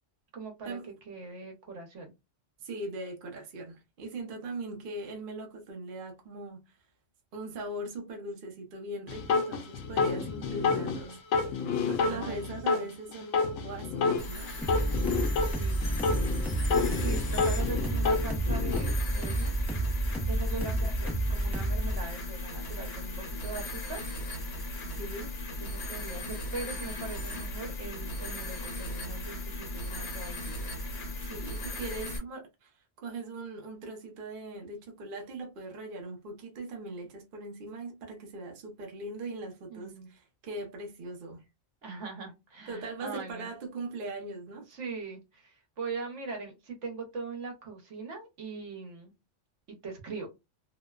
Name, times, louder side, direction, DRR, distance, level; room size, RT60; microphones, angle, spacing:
voice 1, 0.3-0.8 1.1-2.1 10.5-11.2 12.0-12.9 14.6-16.6 16.9-19.5 20.3-24.4 25.6-30.5 39.7-40.1 41.8-43.5 44.7-49.1 49.7-50.3, right 4 dB, 70° right, 1.2 m, -41 dB
voice 2, 2.6-6.8 7.3-11.2 11.9-14.5 20.5-21.0 24.9-25.3 31.2-41.4 42.7-44.7, right 2 dB, 50° right, 0.8 m, -40 dB
sound 1, 9.1-12.9 13.1-15.5 15.8-18.9, left 4 dB, 80° left, 0.9 m, -29 dB
sound 2, 14.2-32.2, left 1 dB, 55° left, 1.1 m, -37 dB
sound 3, 14.6-22.0, right 1 dB, ahead, 0.5 m, -30 dB
2.8 x 2.1 x 2.2 m
omnidirectional pair, 1.3 m